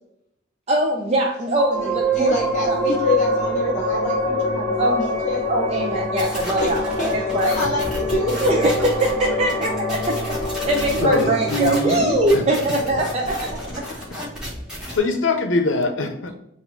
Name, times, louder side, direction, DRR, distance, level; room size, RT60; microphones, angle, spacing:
voice 1, 0.7-2.3 2.7-2.8 4.8-5.1 5.5-6.8 7.1-7.6 8.4-13.6, right 1 dB, 35° right, 0 dB, 0.5 m, -22 dB
sound 1, 1.5-14.4, left 1 dB, 10° left, 1.5 m, -26 dB
voice 2, 1.8-5.5 6.6-8.6, left 2 dB, 40° left, -2 dB, 0.8 m, -27 dB
sound 2, 6.2-15.0, equal, 5° right, 1.4 m, -33 dB
voice 3, 11.0-12.4 14.9-16.3, left 2 dB, 90° left, 6 dB, 0.7 m, -22 dB
4.1 x 2.6 x 4.4 m, 0.79 s
head